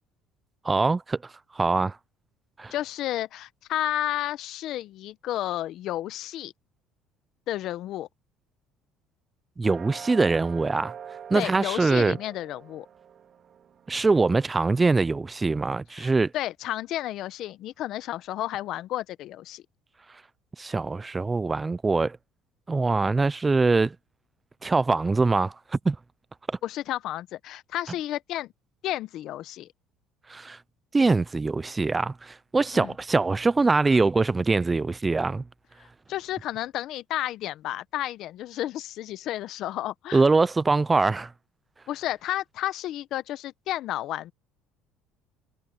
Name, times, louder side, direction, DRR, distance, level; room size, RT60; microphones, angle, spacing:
voice 1, 0.7-1.2 1.6-1.9 2.6-2.7 9.6-10.9 11.3-12.2 13.9-16.3 20.6-22.2 22.7-23.9 24.6-25.5 25.9-26.0 30.3-30.6 30.9-35.4 40.1-41.3, right 3 dB, 15° right, 0.3 m, -23 dB
voice 2, 2.7-6.5 7.5-8.1 11.3-12.9 15.9-19.6 26.6-28.5 28.8-29.7 32.7-32.9 36.1-40.2 41.9-44.3, left 13 dB, 60° left, 0.7 m, -32 dB
sound 1, 9.6-15.3, right 8 dB, 40° right, 3.0 m, -45 dB
cardioid pair, 130°, 0 cm